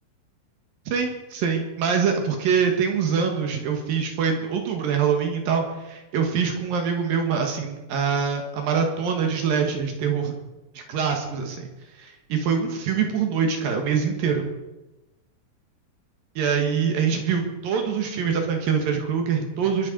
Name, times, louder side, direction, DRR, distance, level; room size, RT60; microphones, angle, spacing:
voice 1, 0.9-10.4 10.7-11.7 12.0-14.4 16.4-19.9, right 6 dB, 65° right, 3 dB, 3.0 m, -24 dB
22.5 x 8.6 x 5.1 m, 1.0 s
omnidirectional pair, 4.9 m